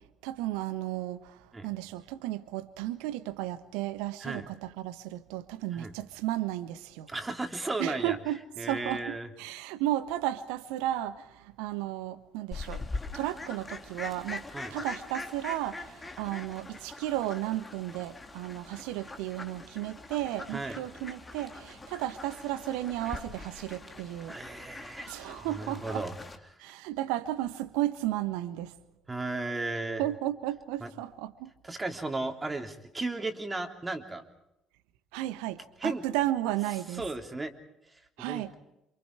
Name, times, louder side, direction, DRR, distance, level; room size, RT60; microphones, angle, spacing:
voice 1, 0.2-7.1 7.8-12.8 13.1-14.4 14.7-24.4 25.1-26.0 26.6-28.7 30.0-31.5 35.1-37.0 38.2-38.5, right 14 dB, 65° right, 1.2 m, -34 dB
voice 2, 7.1-8.2 8.6-9.3 14.5-14.7 20.5-20.8 24.3-25.1 25.4-26.2 29.1-30.0 30.8-30.9 31.6-34.2 35.8-36.0 36.9-37.5 38.2-38.5, right 2 dB, 20° right, 3.4 m, -35 dB
Fowl, 12.5-26.4, left 3 dB, 20° left, 2.7 m, -43 dB
28.5 x 27.0 x 4.8 m
figure-of-eight pair, 50°, 0 cm